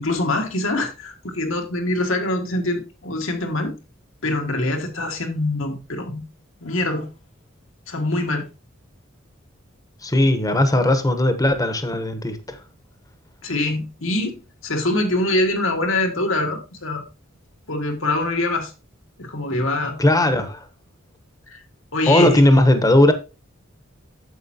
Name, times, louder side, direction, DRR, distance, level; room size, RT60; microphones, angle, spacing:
voice 1, 0.0-3.7 4.2-6.2 6.6-7.1 7.9-8.5 13.4-17.0 17.7-18.7 19.2-20.0 21.5-21.6 21.9-22.4, left 2 dB, 75° left, 1.8 m, -24 dB
voice 2, 10.0-12.6 20.0-20.7 22.1-23.1, left 1 dB, 20° left, 1.0 m, -17 dB
9.2 x 7.5 x 2.8 m
head